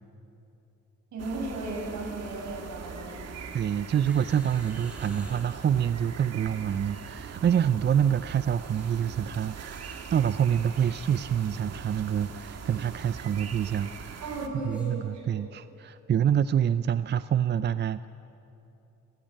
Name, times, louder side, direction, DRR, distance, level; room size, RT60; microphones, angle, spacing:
voice 1, 1.1-3.3 14.2-15.4, right 2 dB, 70° right, 0 dB, 7.3 m, -36 dB
sound 1, 1.2-14.5, right 6 dB, 55° right, 1.9 m, -42 dB
voice 2, 3.5-14.2 14.5-18.1, right 9 dB, 35° right, 14 dB, 0.5 m, -27 dB
sound 2, 4.0-5.7 6.5-7.1 7.4-7.8 8.4-15.0 15.2-15.3, equal, 5° right, 7.2 m, -53 dB
30.0 x 15.0 x 8.9 m, 2.9 s
cardioid pair, 90°, 30 cm